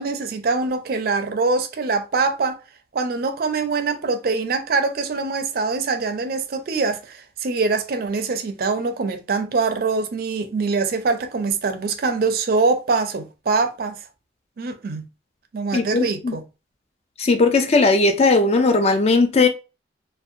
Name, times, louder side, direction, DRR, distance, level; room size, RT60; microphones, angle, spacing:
voice 1, 0.0-2.6 2.9-14.0 14.6-15.0 15.5-16.4, right 4 dB, 50° right, 0.4 m, -23 dB
voice 2, 15.7-16.4 17.2-19.5, left 3 dB, 35° left, 0.4 m, -17 dB
2.6 x 2.1 x 2.4 m
head